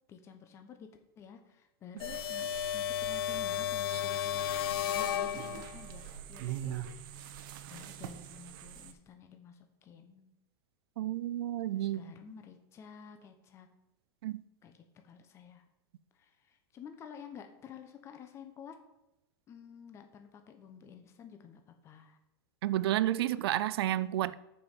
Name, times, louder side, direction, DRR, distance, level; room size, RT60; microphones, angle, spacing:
voice 1, 0.1-0.9 1.2-6.7 7.1-7.3 7.7-10.3 11.7-13.7 14.6-14.8 15.0-15.6 16.1-18.8 19.5-22.2, left 7 dB, 20° left, 0.8 m, -51 dB
sound 1, 2.0-5.9, left 10 dB, 75° left, 0.5 m, -33 dB
sound 2, 2.0-8.9, right 10 dB, 60° right, 0.9 m, -44 dB
voice 2, 11.0-12.0 14.2-14.4 22.6-24.4, right 13 dB, 75° right, 0.5 m, -31 dB
6.8 x 5.4 x 7.2 m
supercardioid pair, 155°, 13 cm